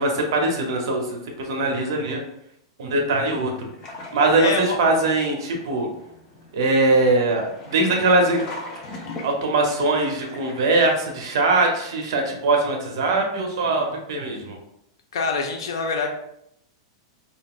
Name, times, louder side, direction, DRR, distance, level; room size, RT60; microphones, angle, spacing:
voice 1, 0.0-2.2 2.8-3.7 4.1-5.9 6.5-8.4 9.2-14.6, right 2 dB, 65° right, 2 dB, 0.8 m, -21 dB
sound 1, 3.3-11.3, left 2 dB, 25° left, 0.5 m, -41 dB
voice 2, 4.3-4.8 15.1-16.1, left 4 dB, 80° left, 3 dB, 0.5 m, -25 dB
2.5 x 2.1 x 3.7 m, 0.78 s
supercardioid pair, 160°, 3 cm